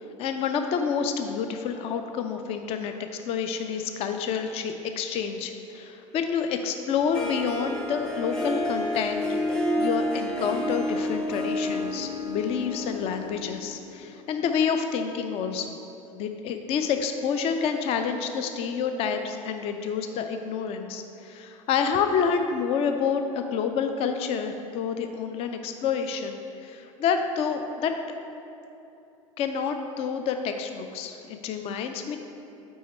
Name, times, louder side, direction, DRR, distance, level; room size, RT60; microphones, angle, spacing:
voice 1, 0.2-2.9 3.3-9.2 9.8-15.8 16.1-27.9 29.4-32.2, left 6 dB, 35° left, 6 dB, 0.4 m, -28 dB
Harp, 7.1-14.0, left 1 dB, 5° left, 0.7 m, -29 dB
5.5 x 4.5 x 4.3 m, 2.8 s
figure-of-eight pair, 75°, 17 cm